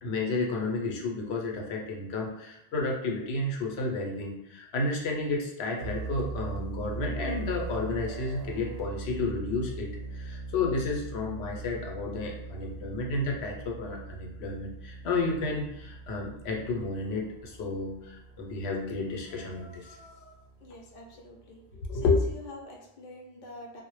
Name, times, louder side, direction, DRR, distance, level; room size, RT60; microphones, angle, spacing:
voice 1, 0.0-20.3 21.8-22.2, left 3 dB, 90° left, 0 dB, 0.8 m, -31 dB
sound 1, 5.8-21.7, right 3 dB, 55° right, 0.6 m, -41 dB
voice 2, 20.6-21.6 21.9-23.8, left 2 dB, 60° left, -1 dB, 0.6 m, -46 dB
2.0 x 2.0 x 3.0 m, 0.81 s
omnidirectional pair, 1.1 m